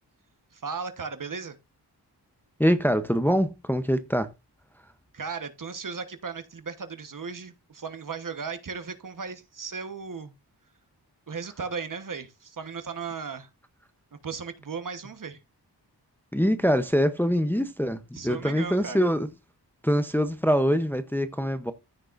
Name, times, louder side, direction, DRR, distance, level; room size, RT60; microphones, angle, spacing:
voice 1, 0.5-1.6 5.1-10.3 11.3-13.5 14.2-15.4 18.1-19.1, right 5 dB, 50° right, 1.2 m, -36 dB
voice 2, 2.6-4.3 16.3-19.3 19.8-21.7, equal, 5° left, 0.7 m, -24 dB
14.5 x 6.5 x 2.5 m
wide cardioid pair, 125°, 41 cm